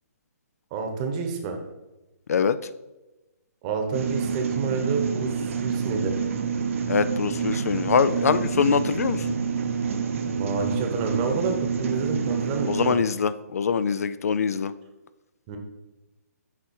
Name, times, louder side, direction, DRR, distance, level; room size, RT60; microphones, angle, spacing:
voice 1, 0.7-1.6 3.6-6.1 10.3-13.0 15.5-15.6, right 4 dB, 25° right, 4 dB, 1.0 m, -29 dB
sound 1, 3.9-12.9, right 6 dB, 50° right, 0.8 m, -28 dB
voice 2, 6.9-9.3 12.7-14.7, left 6 dB, 65° left, 15 dB, 0.4 m, -23 dB
7.3 x 4.6 x 4.6 m, 1.0 s
hypercardioid pair, 155°, 9 cm